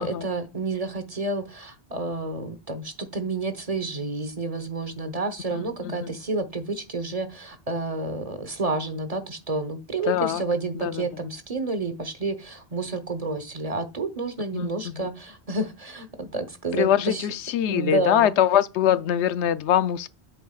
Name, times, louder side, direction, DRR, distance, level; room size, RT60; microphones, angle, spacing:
voice 1, 0.0-17.2 17.7-18.4, right 3 dB, 35° right, 1.1 m, -30 dB
voice 2, 5.5-6.2 10.1-10.4 10.7-11.1 14.5-15.1 16.7-20.1, left 10 dB, 90° left, 0.9 m, -23 dB
8.8 x 7.1 x 2.4 m
omnidirectional pair, 1.1 m